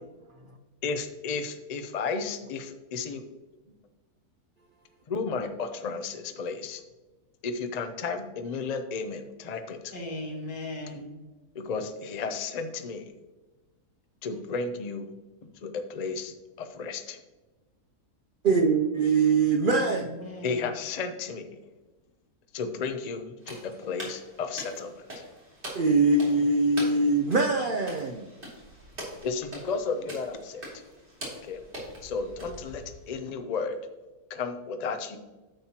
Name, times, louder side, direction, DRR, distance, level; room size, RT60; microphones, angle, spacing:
voice 1, 0.8-3.2 5.1-6.8 7.4-9.9 11.5-13.1 14.2-15.1 15.6-17.2 20.4-21.5 22.5-25.2 29.2-30.6 31.4-31.6 32.0-33.8 34.3-35.2, left 4 dB, 50° left, 0.5 m, -33 dB
voice 2, 9.9-11.0 19.8-20.7, left 1 dB, 80° left, 2.5 m, -37 dB
voice 3, 18.4-20.1 25.7-28.2, right 3 dB, 70° right, 0.4 m, -23 dB
sound 1, 23.4-33.1, equal, 35° right, 2.8 m, -43 dB
10.0 x 7.3 x 2.9 m
omnidirectional pair, 1.6 m